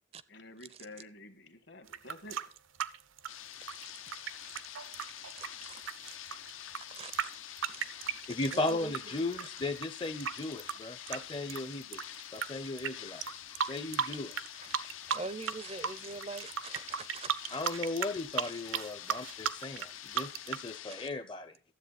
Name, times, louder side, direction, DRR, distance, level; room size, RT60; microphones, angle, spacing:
voice 1, 0.3-2.4, left 2 dB, 65° left, 1.5 m, -49 dB
sound 1, 1.9-9.0 9.3-12.5 12.8-12.9 13.2-14.5 14.7-15.5 15.8-20.7, right 7 dB, 85° right, 0.7 m, -35 dB
sound 2, 3.3-21.1, left 12 dB, 85° left, 0.6 m, -47 dB
voice 2, 3.7-4.2 4.7-6.4 6.9-8.1 8.5-8.9 13.6-13.7 14.6-14.8 15.1-17.8 18.5-18.6 20.9-21.0, right 4 dB, 30° right, 0.4 m, -45 dB
voice 3, 8.3-12.0 12.3-14.5 17.5-21.6, left 2 dB, 25° left, 0.5 m, -36 dB
13.0 x 7.7 x 4.1 m
head